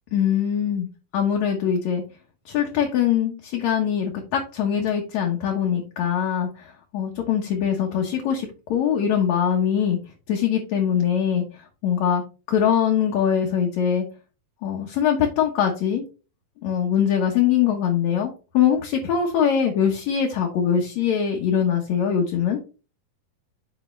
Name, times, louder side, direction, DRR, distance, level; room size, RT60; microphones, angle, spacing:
voice 1, 0.1-0.9 1.1-2.0 2.5-6.7 6.9-10.0 10.3-11.4 11.8-12.2 12.5-14.0 14.6-16.0 16.6-22.6, left 8 dB, 65° left, 1 dB, 2.0 m, -22 dB
7.7 x 5.5 x 3.2 m, 0.33 s
omnidirectional pair, 4.1 m